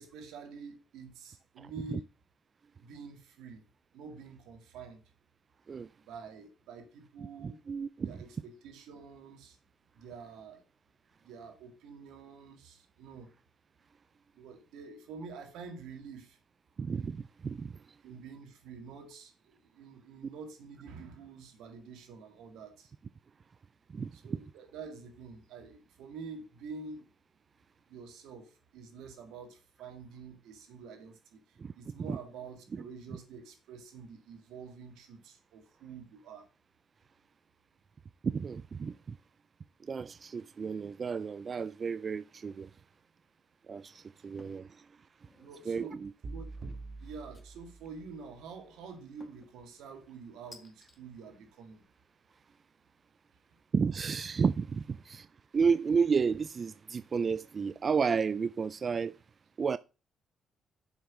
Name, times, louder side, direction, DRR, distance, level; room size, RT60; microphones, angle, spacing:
voice 1, 0.0-2.1 2.8-3.6 3.9-5.0 6.0-7.6 8.0-9.6 9.9-10.6 11.2-13.3 14.3-16.4 18.0-22.9 24.1-27.1 27.9-36.5 45.4-46.0 46.3-46.5 47.0-51.8, right 5 dB, 90° right, 2.1 m, -47 dB
voice 2, 1.6-2.0 5.7-5.9 7.4-8.2 16.8-17.8 23.9-24.1 31.6-32.2 38.2-39.2 39.8-42.7 43.7-44.7 45.7-46.1 53.7-55.3 55.5-59.1 59.6-59.8, right 5 dB, 40° right, 0.3 m, -32 dB
sound 1, 44.4-44.7 45.1-45.6 47.3-47.9 49.2-49.6 50.5-51.0, left 2 dB, 20° left, 1.9 m, -56 dB
sound 2, 46.2-48.4, right 3 dB, 60° right, 2.1 m, -45 dB
7.3 x 5.7 x 6.2 m
cardioid pair, 90°, 0 cm